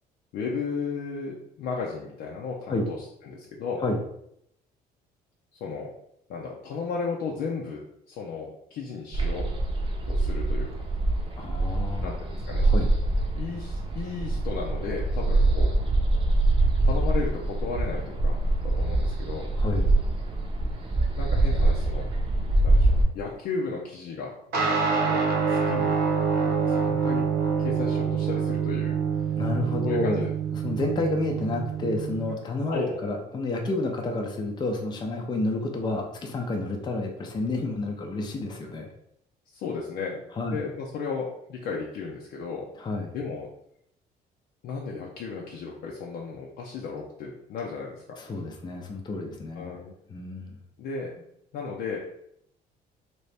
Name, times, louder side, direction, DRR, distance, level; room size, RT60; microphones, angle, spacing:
voice 1, 0.3-3.0 3.2-3.8 5.6-5.9 6.3-9.5 10.1-10.7 12.0-12.7 13.3-15.7 16.8-18.4 18.6-19.5 21.2-22.1 22.6-26.0 26.4-27.3 27.6-29.0 29.8-30.3 32.7-33.0 39.5-42.7 43.1-43.5 44.6-48.2 49.5-50.0 50.8-51.1 51.5-52.0, left 5 dB, 70° left, -2 dB, 0.6 m, -34 dB
sound 1, 9.1-23.0, right 2 dB, 30° right, 0.7 m, -24 dB
voice 2, 11.4-12.1 12.6-12.9 19.6-19.9 29.4-30.2 30.6-38.9 40.4-40.6 42.8-43.1 48.2-49.8 50.1-50.6, left 2 dB, 25° left, 2 dB, 0.5 m, -30 dB
sound 2, 24.5-32.3, right 6 dB, 70° right, 0.9 m, -26 dB
3.0 x 2.8 x 3.3 m, 0.75 s
cardioid pair, 110°, 17 cm